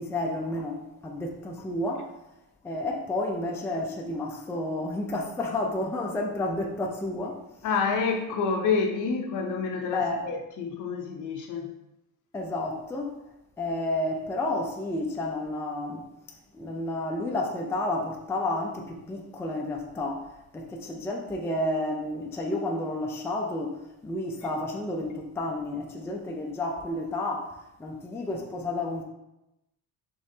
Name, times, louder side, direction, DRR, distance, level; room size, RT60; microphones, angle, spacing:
voice 1, 0.0-2.1 2.6-7.4 9.9-10.2 12.3-13.2 13.6-16.0 16.5-29.0, left 1 dB, 5° left, 0.4 m, -31 dB
voice 2, 7.6-11.7, left 5 dB, 55° left, 0.7 m, -28 dB
5.1 x 3.1 x 2.7 m
cardioid pair, 135°, 37 cm